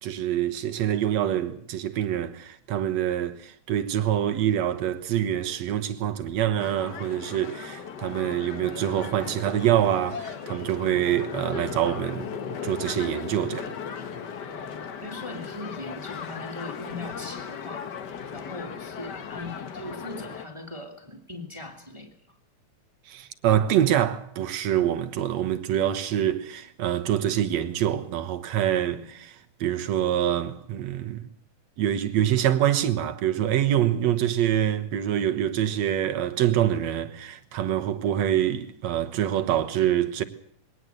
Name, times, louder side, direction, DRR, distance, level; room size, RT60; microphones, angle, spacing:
voice 1, 0.0-12.3 12.6-13.7 23.1-29.4 29.6-31.3 31.8-40.2, right 11 dB, 70° right, 2.3 m, -25 dB
sound 1, 6.6-20.4, left 6 dB, 55° left, 1.2 m, -37 dB
voice 2, 14.5-17.9 18.3-22.2 28.9-29.1, left 2 dB, 10° right, 2.0 m, -40 dB
21.5 x 18.0 x 8.1 m
omnidirectional pair, 3.4 m